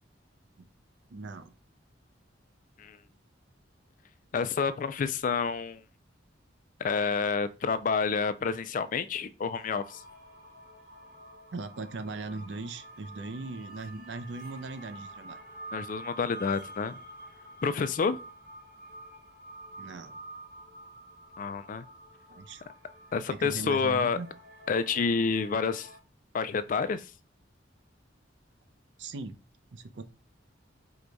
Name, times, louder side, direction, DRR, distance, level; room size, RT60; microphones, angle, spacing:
voice 1, 1.1-1.5 11.5-15.4 19.8-20.2 22.3-22.6 23.3-24.3 29.0-29.4 29.7-30.0, right 3 dB, 70° right, 0.5 m, -39 dB
voice 2, 4.3-5.8 6.8-10.0 15.7-17.0 17.6-18.2 21.4-21.8 23.1-24.2 24.7-25.9 26.3-27.1, left 5 dB, 45° left, 0.3 m, -29 dB
sound 1, 9.5-26.0, right 1 dB, 55° right, 1.1 m, -48 dB
4.8 x 2.3 x 3.9 m
head